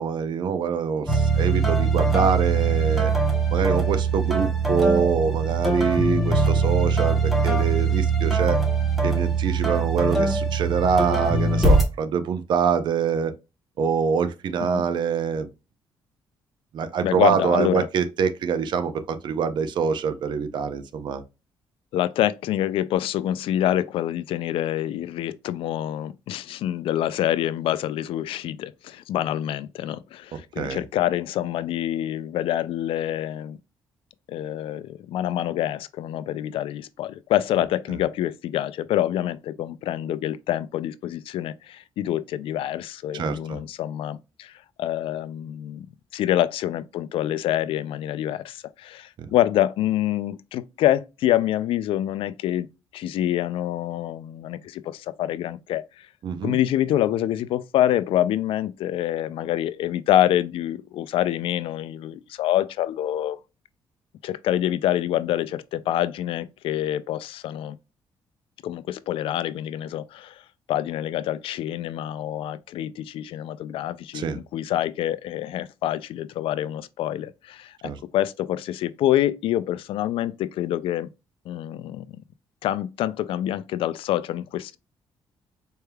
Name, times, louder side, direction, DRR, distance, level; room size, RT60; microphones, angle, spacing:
voice 1, 0.0-3.1 3.5-8.6 9.0-13.3 13.8-15.5 16.7-21.2 30.6-30.8 43.1-43.6 49.2-49.3 56.2-56.6 74.1-74.4 77.8-78.0, right 6 dB, 55° right, 0.6 m, -25 dB
sound 1, 1.1-11.8, right 3 dB, ahead, 0.9 m, -22 dB
voice 2, 17.0-17.9 21.9-33.6 34.3-44.5 44.8-45.9 46.1-52.7 52.9-55.8 56.4-63.4 64.2-67.8 68.6-70.4 70.7-81.1 81.5-82.0 82.6-84.8, left 12 dB, 75° left, 0.4 m, -26 dB
4.4 x 3.3 x 2.2 m
cardioid pair, 150°, 9 cm